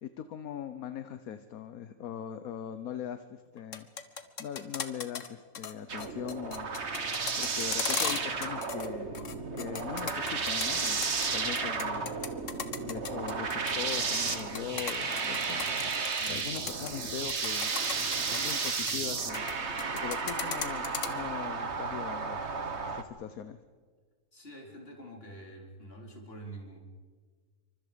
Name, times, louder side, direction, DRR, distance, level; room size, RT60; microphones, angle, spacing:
voice 1, 0.0-3.9 4.4-6.8 7.4-9.2 9.5-11.1 11.3-12.2 12.8-15.6 16.3-17.7 18.2-19.5 19.9-23.6, left 9 dB, 70° left, 10 dB, 1.4 m, -40 dB
sound 1, 3.6-5.3 5.5-5.7 6.0-8.9 9.1-11.3 11.6-16.3 16.6-16.9 17.3-19.5 19.8-21.1, left 6 dB, 55° left, 1.6 m, -36 dB
sound 2, 5.9-23.0, right 4 dB, 50° right, 1.8 m, -33 dB
voice 2, 24.3-26.8, right 1 dB, 40° left, 0 dB, 4.5 m, -46 dB
27.5 x 25.0 x 5.2 m, 1.5 s
omnidirectional pair, 1.6 m